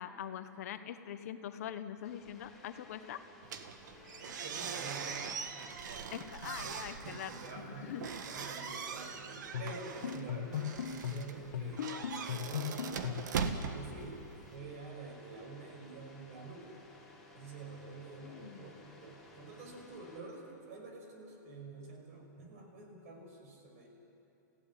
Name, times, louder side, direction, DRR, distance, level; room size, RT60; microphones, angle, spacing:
voice 1, 0.0-3.2 6.1-8.1 18.2-18.8, left 10 dB, 55° left, 10 dB, 1.1 m, -43 dB
sound 1, 2.0-20.2, left 1 dB, 5° left, 4.0 m, -58 dB
sound 2, 3.4-14.6, right 6 dB, 70° right, 1.7 m, -41 dB
voice 2, 4.2-5.2 6.6-11.9 12.3-16.8 17.3-23.9, right 3 dB, 50° right, 2 dB, 5.9 m, -48 dB
sound 3, 9.5-13.4, left 8 dB, 90° left, 1.0 m, -38 dB
27.0 x 16.5 x 9.9 m, 2.8 s
supercardioid pair, 170°, 10 cm